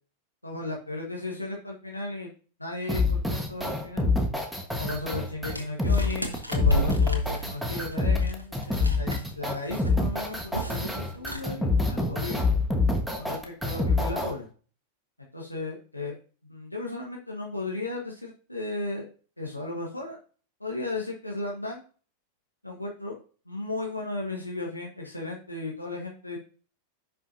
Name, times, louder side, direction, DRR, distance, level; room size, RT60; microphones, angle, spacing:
voice 1, 0.4-2.3 2.6-4.1 4.8-8.6 9.0-12.5 13.2-14.5 15.3-16.1 16.4-19.0 19.4-20.2 20.6-21.8 22.6-23.2 23.5-26.4, left 2 dB, 85° left, -1 dB, 1.4 m, -35 dB
sound 1, 2.9-14.3, left 3 dB, ahead, 1.4 m, -26 dB
sound 2, 5.5-9.3 9.6-9.9 10.2-10.9 11.1-11.4, right 1 dB, 85° right, 1.1 m, -30 dB
10.5 x 5.4 x 2.7 m, 0.39 s
figure-of-eight pair, 90°, 0 cm